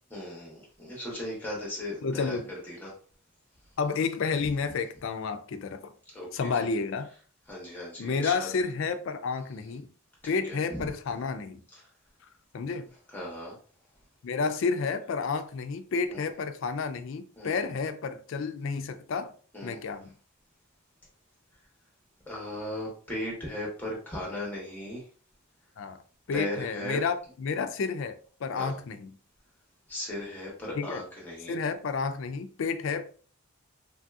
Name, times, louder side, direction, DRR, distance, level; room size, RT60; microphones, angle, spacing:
voice 1, 0.1-2.9 6.1-6.7 7.5-8.5 10.2-10.6 13.1-13.6 16.1-16.2 17.4-17.6 19.5-19.8 22.3-25.0 26.3-27.0 28.6-28.8 29.9-31.6, left 1 dB, 10° left, 1.0 m, -37 dB
voice 2, 2.0-2.5 3.8-5.9 6.3-7.1 8.0-9.9 10.2-11.6 12.5-12.9 14.2-19.3 19.6-20.1 25.8-26.0 26.3-29.1 30.7-31.0 31.5-33.1, left 5 dB, 60° left, 0.3 m, -31 dB
3.2 x 2.6 x 2.3 m
head